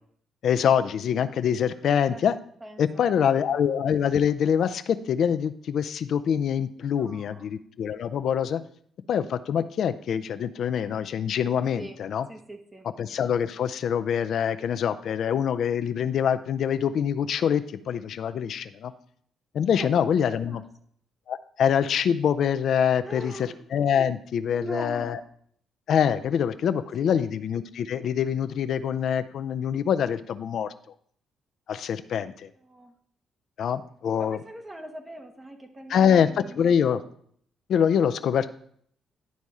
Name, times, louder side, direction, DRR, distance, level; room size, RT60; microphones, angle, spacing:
voice 1, 0.4-2.4 2.8-8.6 9.1-12.3 13.0-18.9 19.5-20.6 21.3-25.2 25.9-30.7 31.7-32.5 33.6-34.4 35.9-37.0 37.7-38.5, left 8 dB, 65° left, 11 dB, 0.5 m, -25 dB
voice 2, 1.8-2.3 2.6-3.4 6.8-7.5 11.7-12.0 12.3-12.9 19.7-19.9 20.5-20.6 23.0-23.6 24.5-25.3 26.7-27.4 32.6-32.9 34.2-36.7, right 1 dB, 20° right, 4 dB, 1.0 m, -41 dB
10.5 x 4.1 x 4.8 m, 0.64 s
cardioid pair, 90°, 0 cm